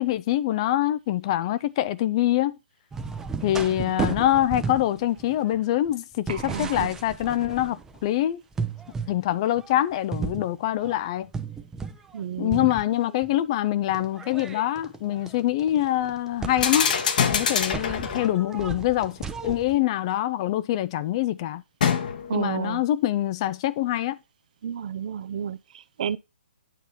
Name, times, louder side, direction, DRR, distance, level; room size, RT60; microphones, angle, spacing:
voice 1, 0.0-2.6 3.4-8.4 9.1-11.3 12.4-17.0 17.2-21.6 22.3-24.2, left 13 dB, 30° left, 0.4 m, -25 dB
sound 1, 2.9-8.1 8.5-9.2 9.5-12.2 12.5-13.3 13.9-19.8, right 5 dB, 10° right, 0.7 m, -35 dB
voice 2, 6.3-6.9 12.1-12.7 22.3-22.8 24.6-26.2, right 8 dB, 45° right, 0.6 m, -31 dB
sound 2, 16.5-18.5 21.8-22.5, left 7 dB, 45° left, 1.3 m, -25 dB
9.2 x 5.6 x 4.3 m
figure-of-eight pair, 130°, 6 cm